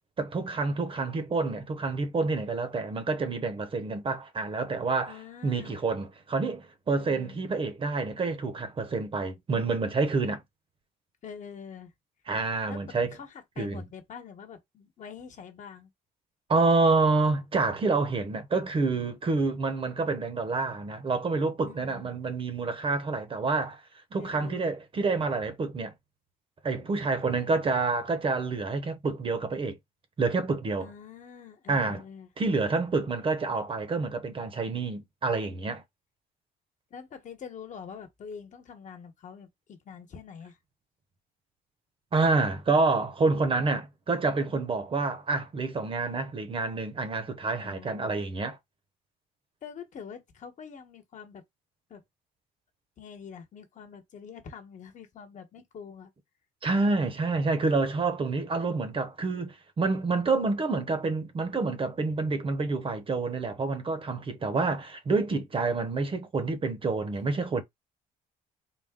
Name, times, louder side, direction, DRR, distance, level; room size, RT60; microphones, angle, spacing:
voice 1, 0.2-5.2 5.4-10.4 12.3-13.1 13.6-13.8 16.5-23.8 24.1-25.9 26.6-29.8 30.2-30.9 31.7-32.0 32.4-35.8 42.1-48.6 56.6-67.6, right 3 dB, 30° right, 0.9 m, -28 dB
voice 2, 5.1-5.8 7.0-7.4 11.2-11.9 12.7-12.8 13.1-15.9 21.7-22.1 24.2-24.6 30.8-32.3 36.9-40.6 47.6-48.2 49.6-51.4 51.9-52.0 53.0-56.1, left 6 dB, 45° left, 1.1 m, -45 dB
4.0 x 2.2 x 3.6 m
cardioid pair, 110°, 17 cm